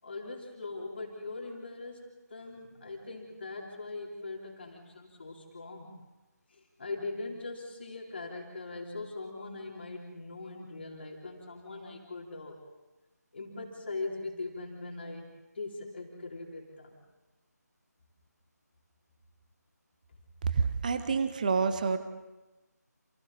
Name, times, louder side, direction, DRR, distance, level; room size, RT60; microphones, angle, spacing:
voice 1, 0.0-5.9 6.5-12.6 13.3-16.9, left 3 dB, 35° left, -1 dB, 3.9 m, -41 dB
voice 2, 20.5-22.0, right 5 dB, 25° right, 11 dB, 1.2 m, -28 dB
30.0 x 28.0 x 4.3 m, 1.1 s
figure-of-eight pair, 160°, 9 cm